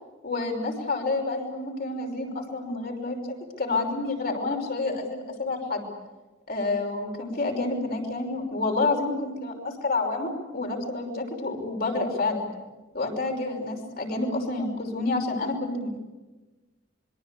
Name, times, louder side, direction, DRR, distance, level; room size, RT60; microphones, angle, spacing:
voice 1, 0.2-3.2 3.6-5.9 6.5-12.5 12.9-16.0, left 3 dB, 50° left, 2 dB, 5.7 m, -29 dB
26.5 x 23.0 x 8.3 m, 1.2 s
head